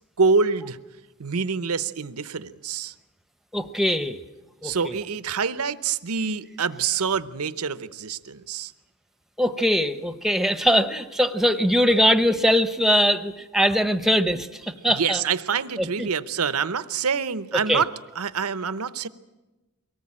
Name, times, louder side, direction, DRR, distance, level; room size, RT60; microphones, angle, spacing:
voice 1, 0.2-0.8 1.2-2.9 4.6-8.7 14.8-17.9 18.2-19.1, right 5 dB, 85° right, 14 dB, 0.8 m, -26 dB
voice 2, 3.5-4.2 4.6-5.0 9.4-15.2 15.8-16.1 17.7-17.8, equal, ahead, 9 dB, 0.8 m, -22 dB
23.0 x 18.5 x 8.7 m, 1.1 s
head